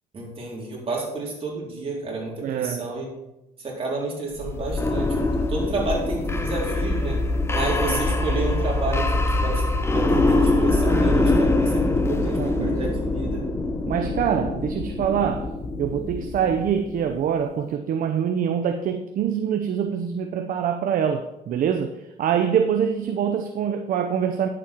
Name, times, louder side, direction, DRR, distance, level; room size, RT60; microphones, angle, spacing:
voice 1, 0.1-3.1 3.6-5.1 5.5-7.2 7.5-9.1 9.3-9.6 9.9-13.4, right 3 dB, 35° right, 3.8 m, -30 dB
voice 2, 2.4-3.0 7.9-8.0 12.2-12.8 13.9-24.5, right 8 dB, 55° right, 0.7 m, -25 dB
sound 1, 4.4-17.1, left 2 dB, 15° left, 0.8 m, -23 dB
9.9 x 7.6 x 4.5 m
cardioid pair, 110°, 17 cm